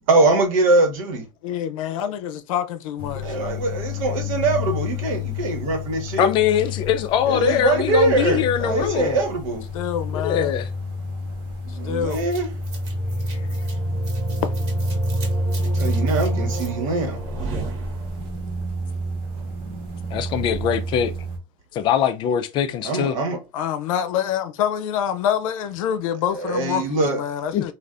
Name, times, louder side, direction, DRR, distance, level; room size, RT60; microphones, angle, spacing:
voice 1, 0.1-1.2 3.2-6.3 7.2-9.6 11.7-12.5 15.6-17.2 22.8-23.4 26.3-27.2, right 2 dB, 85° right, 1.2 m, -22 dB
voice 2, 1.4-3.3 9.7-10.5 11.8-12.2 13.3-13.5 23.5-27.7, left 9 dB, 80° left, 0.6 m, -26 dB
sound 1, 3.0-21.4, left 1 dB, 30° right, 1.0 m, -28 dB
voice 3, 6.2-9.2 10.1-10.7 20.1-21.1 21.7-23.2 27.5-27.7, left 9 dB, 30° left, 0.3 m, -22 dB
sound 2, 12.1-18.4, right 3 dB, 55° right, 1.2 m, -34 dB
3.4 x 2.4 x 2.5 m
supercardioid pair, 160°, 17 cm